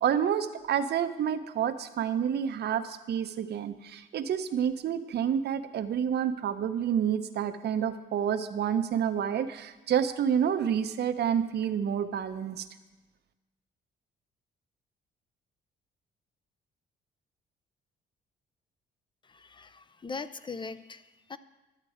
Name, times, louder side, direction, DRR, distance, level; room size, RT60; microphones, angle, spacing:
voice 1, 0.0-12.6, right 8 dB, 55° right, 9 dB, 0.6 m, -29 dB
voice 2, 19.2-21.4, left 4 dB, 25° left, 14 dB, 0.5 m, -41 dB
11.5 x 7.4 x 4.9 m, 1.1 s
cardioid pair, 90°, 20 cm